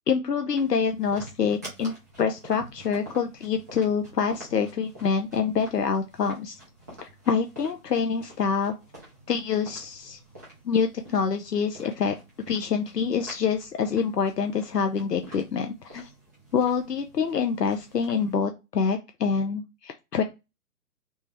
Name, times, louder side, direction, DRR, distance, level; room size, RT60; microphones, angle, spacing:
voice 1, 0.1-6.5 7.0-8.7 9.3-10.2 10.6-12.2 12.5-16.1 16.5-20.2, left 6 dB, 80° left, 6 dB, 0.7 m, -26 dB
sound 1, 0.5-18.4, right 1 dB, 10° right, 0.6 m, -48 dB
3.3 x 3.1 x 3.2 m, 0.25 s
figure-of-eight pair, 135°, 47 cm